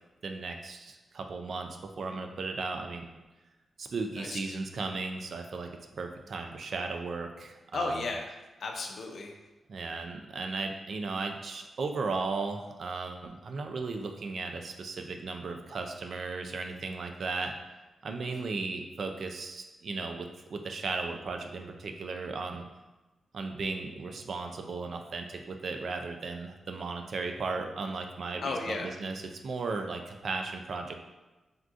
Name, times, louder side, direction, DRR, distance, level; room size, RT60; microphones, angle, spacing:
voice 1, 0.2-3.2 3.8-8.0 9.7-17.5 18.0-22.7 23.3-31.0, right 3 dB, 70° right, 4 dB, 0.3 m, -36 dB
voice 2, 4.2-4.6 7.7-8.3 8.6-9.4 18.3-18.5 28.4-28.9, left 3 dB, 70° left, 3 dB, 0.4 m, -35 dB
3.5 x 2.3 x 2.5 m, 1.1 s
supercardioid pair, 45°, 0 cm